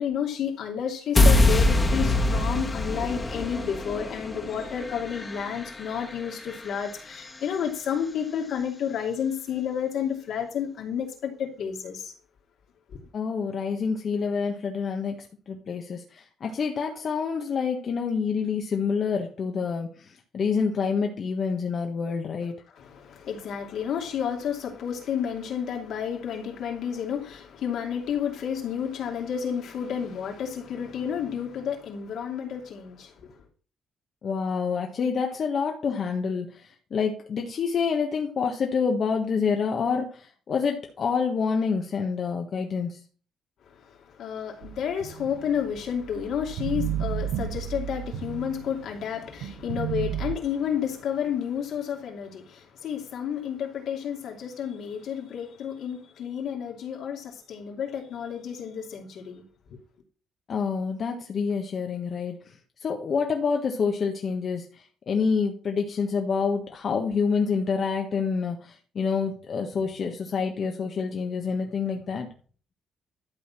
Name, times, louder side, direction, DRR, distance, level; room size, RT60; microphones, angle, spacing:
voice 1, 0.0-12.1 12.9-13.0 22.7-33.4 43.7-59.4 59.7-59.8, left 8 dB, 75° left, 2.7 m, -31 dB
sound 1, 1.2-7.3, left 2 dB, 25° left, 1.7 m, -24 dB
voice 2, 13.1-22.5 34.2-43.0 60.5-72.3, left 5 dB, 55° left, 1.4 m, -27 dB
sound 2, 44.6-48.9 49.4-50.4, right 10 dB, 90° right, 0.7 m, -33 dB
12.0 x 4.1 x 7.4 m
cardioid pair, 90°, 0 cm